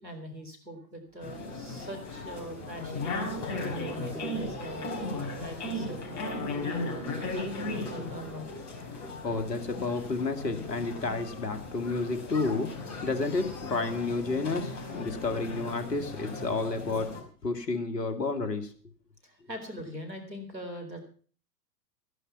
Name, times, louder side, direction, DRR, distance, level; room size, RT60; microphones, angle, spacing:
voice 1, 0.0-3.1 3.6-5.1 5.4-6.9 7.3-8.5 9.2-9.3 19.2-21.1, equal, 90° right, 5 dB, 3.9 m, -42 dB
sound 1, 1.2-17.2, left 2 dB, 35° left, 4.9 m, -37 dB
sound 2, 1.4-11.4, right 6 dB, 40° right, 2.7 m, -50 dB
voice 2, 9.2-17.1 17.4-18.7, left 3 dB, 75° left, 8 dB, 2.3 m, -31 dB
14.5 x 11.0 x 5.9 m, 0.42 s
figure-of-eight pair, 95°, 49 cm